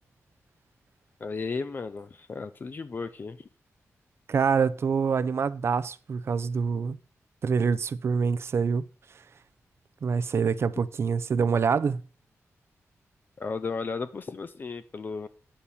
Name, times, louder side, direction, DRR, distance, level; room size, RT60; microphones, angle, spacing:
voice 1, 1.2-3.5 13.4-15.3, left 4 dB, 40° left, 0.5 m, -34 dB
voice 2, 4.3-7.0 7.4-8.8 10.0-12.0, right 6 dB, 55° right, 0.5 m, -25 dB
10.0 x 4.2 x 7.0 m
wide cardioid pair, 140°, 5 cm